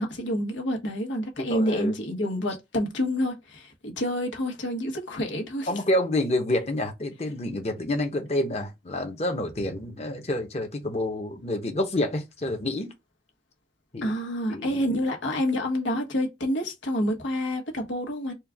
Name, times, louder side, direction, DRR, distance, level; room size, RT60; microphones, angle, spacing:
voice 1, 0.0-5.7 14.0-18.3, equal, 90° left, 1.5 m, -28 dB
voice 2, 1.4-1.9 5.7-12.9 13.9-14.1 14.5-14.8, left 1 dB, 35° left, 1.0 m, -28 dB
4.4 x 2.4 x 3.5 m
head